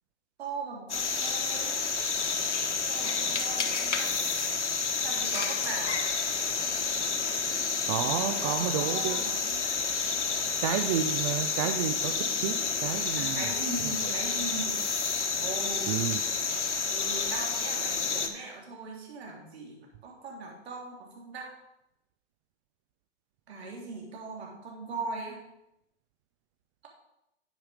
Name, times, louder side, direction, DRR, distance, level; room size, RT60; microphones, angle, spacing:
voice 1, 0.4-1.7 2.9-4.1 5.0-6.1 8.0-9.7 10.6-10.7 13.2-14.8 15.4-15.9 16.9-21.5 23.5-25.4, right 3 dB, 60° right, -1 dB, 3.0 m, -39 dB
sound 1, 0.9-18.3, left 5 dB, 75° left, 1.1 m, -30 dB
voice 2, 7.9-9.2 10.6-12.1 12.4-13.5 14.0-14.1 15.9-16.2, right 9 dB, 30° right, 7 dB, 0.4 m, -31 dB
9.2 x 5.5 x 5.0 m, 0.85 s
figure-of-eight pair, 110°, 35 cm